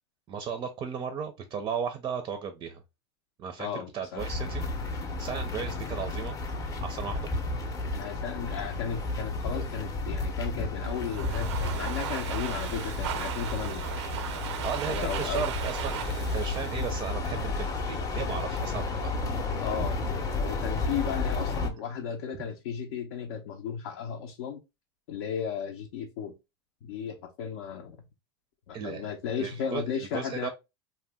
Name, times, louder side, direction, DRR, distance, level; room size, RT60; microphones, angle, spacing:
voice 1, 0.3-2.8 3.4-4.7 5.2-6.3 6.8-7.3 9.5-9.7 14.6-19.1 28.7-29.1 29.4-29.8 30.1-30.5, right 7 dB, 30° right, 0.4 m, -35 dB
voice 2, 3.6-4.2 7.9-13.8 14.9-15.5 19.6-20.0 20.3-24.6 25.1-26.3 26.8-28.0 28.7-30.5, left 7 dB, 75° left, 0.5 m, -35 dB
sound 1, 4.2-21.7, left 3 dB, 25° left, 0.6 m, -32 dB
Domestic sounds home sounds, 10.8-17.7, right 10 dB, 90° right, 0.4 m, -37 dB
2.7 x 2.1 x 3.3 m
supercardioid pair, 130°, 14 cm